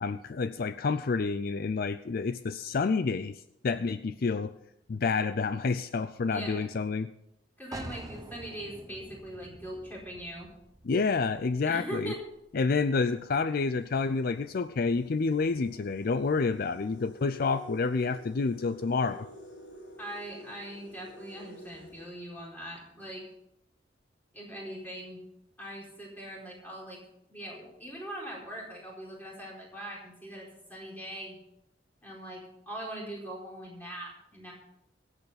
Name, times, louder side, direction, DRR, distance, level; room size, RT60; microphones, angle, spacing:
voice 1, 0.0-4.5 4.9-7.1 10.8-12.1 12.5-19.3, left 4 dB, 55° left, 12 dB, 0.5 m, -29 dB
voice 2, 6.2-6.7 7.6-10.5 11.7-12.2 20.0-23.2 24.3-25.2 25.6-27.0 27.3-31.4 32.0-34.5, right 1 dB, 10° left, -3 dB, 4.5 m, -41 dB
sound 1, 7.7-13.3, right 2 dB, 20° right, 0.8 m, -48 dB
sound 2, 12.6-12.7 13.1-22.9, left 1 dB, 70° left, 3.8 m, -51 dB
23.5 x 8.2 x 4.1 m, 0.81 s
head